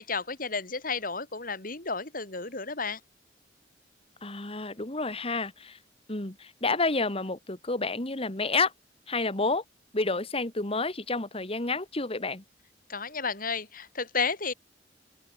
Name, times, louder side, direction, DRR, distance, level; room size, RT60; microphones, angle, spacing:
voice 1, 0.0-3.0 12.9-14.5, left 4 dB, 50° left, 6.3 m, -32 dB
voice 2, 4.2-5.8 6.1-8.7 9.1-9.6 9.9-12.4, left 3 dB, 35° left, 2.4 m, -29 dB
open air
head